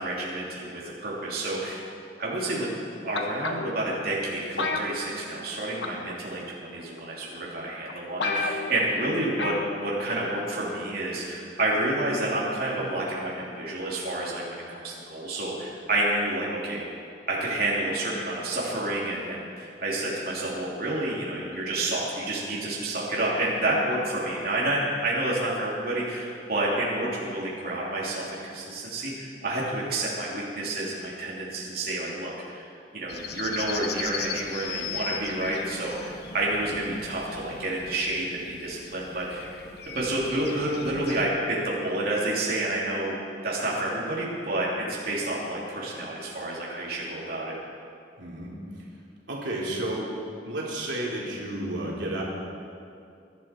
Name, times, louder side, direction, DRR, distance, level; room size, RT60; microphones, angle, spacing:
voice 1, 0.0-1.8 2.2-16.8 17.3-32.6 32.9-39.5 39.8-43.1 43.4-47.6, right 1 dB, 55° right, -6 dB, 3.0 m, -29 dB
sound 1, 3.1-3.8 4.6-5.5 5.8-6.1 7.0-7.1 7.6-7.7 7.9-8.0 8.2-8.9 9.4-9.7 10.0-10.1, left 3 dB, 80° left, 1.3 m, -30 dB
sound 2, 33.1-41.3, left 6 dB, 60° left, 1.1 m, -38 dB
voice 2, 48.2-48.5 49.3-50.2 50.4-52.2, right 1 dB, 85° right, -4 dB, 3.3 m, -31 dB
22.5 x 11.5 x 4.5 m, 2.5 s
head